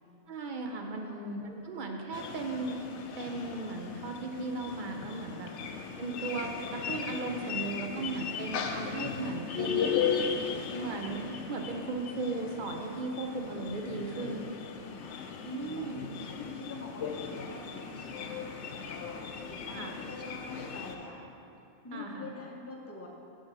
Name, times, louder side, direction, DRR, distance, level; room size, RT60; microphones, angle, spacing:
voice 1, 0.3-2.9 3.2-5.5 6.0-9.8 10.5-14.4 15.4-16.1 19.7-19.9 21.9-22.3, right 3 dB, 50° right, 3 dB, 0.6 m, -36 dB
sound 1, 2.1-21.0, left 6 dB, 70° left, 0.9 m, -37 dB
voice 2, 8.2-8.6 9.9-10.9 13.8-14.4 14.7-15.2 15.5-15.8 16.3-21.3 21.8-23.1, left 2 dB, 15° left, -1 dB, 0.6 m, -46 dB
8.0 x 3.8 x 6.1 m, 3.0 s
omnidirectional pair, 1.3 m